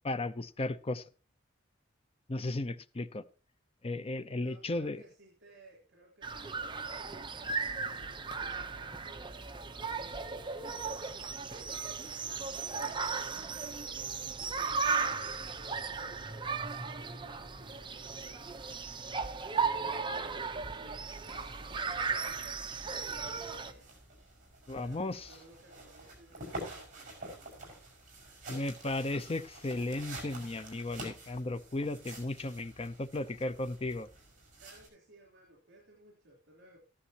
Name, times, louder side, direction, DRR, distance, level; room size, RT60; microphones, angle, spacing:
voice 1, 0.0-1.0 2.3-3.2 3.8-5.0 24.7-25.3 28.5-34.1, left 2 dB, 30° left, 12 dB, 0.6 m, -35 dB
voice 2, 4.4-9.3 9.9-10.6 11.0-13.3 13.7-14.3 14.8-18.5 19.4-23.9 24.7-28.0 34.6-36.8, right 1 dB, 65° right, -3 dB, 3.4 m, -59 dB
sound 1, 6.2-23.7, right 5 dB, 25° right, 0.8 m, -36 dB
sound 2, 21.1-34.9, right 1 dB, 45° right, 5.9 m, -49 dB
14.0 x 11.5 x 2.9 m, 0.36 s
head